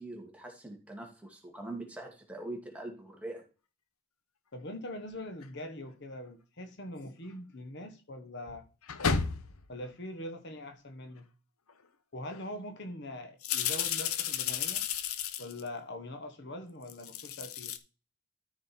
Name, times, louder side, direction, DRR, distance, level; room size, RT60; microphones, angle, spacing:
voice 1, 0.0-3.5, right 2 dB, 5° right, 2.1 m, -43 dB
voice 2, 4.5-8.7 9.7-11.3 12.1-14.8 15.4-17.7, left 1 dB, 50° left, 1.2 m, -42 dB
sound 1, 5.4-5.5 7.0-7.1 8.5-9.7 11.7-11.8 12.3-12.5 13.4-15.7 16.8-17.8, left 7 dB, 80° left, 0.9 m, -33 dB
13.5 x 5.1 x 4.4 m
head